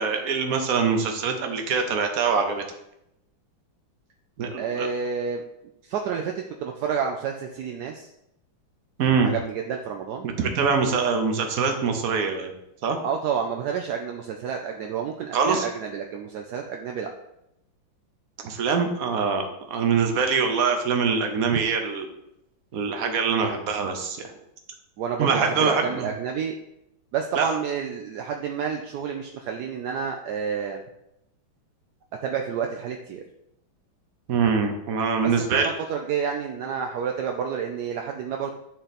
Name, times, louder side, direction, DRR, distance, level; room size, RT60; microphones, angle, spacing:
voice 1, 0.0-2.6 4.4-4.9 9.0-9.3 10.2-12.5 12.8-13.0 15.3-15.7 18.4-22.1 22.7-24.3 25.2-26.1 27.3-27.5 34.3-35.7, right 5 dB, 55° right, 5 dB, 1.2 m, -24 dB
voice 2, 4.6-5.4 5.8-8.1 9.2-10.3 13.0-17.1 21.5-21.6 25.0-26.6 27.1-30.8 32.2-33.2 35.2-38.5, right 7 dB, 70° right, 3 dB, 1.0 m, -29 dB
10.0 x 3.8 x 4.2 m, 0.83 s
omnidirectional pair, 2.2 m